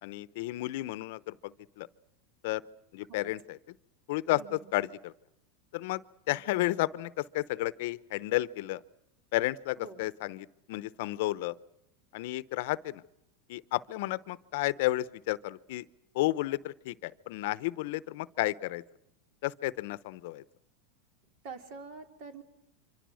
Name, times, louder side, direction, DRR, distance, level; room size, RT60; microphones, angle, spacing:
voice 1, 0.0-1.9 2.4-2.6 2.9-3.7 4.1-5.1 5.7-6.0 6.3-8.8 9.3-11.6 12.1-13.0 13.5-15.8 16.1-18.8 19.4-20.4, left 17 dB, 65° left, 17 dB, 0.8 m, -32 dB
voice 2, 4.3-4.7 9.8-10.0 21.4-22.4, right 4 dB, 55° right, 6 dB, 3.3 m, -46 dB
25.5 x 25.5 x 6.4 m, 0.83 s
supercardioid pair, 125°, 0 cm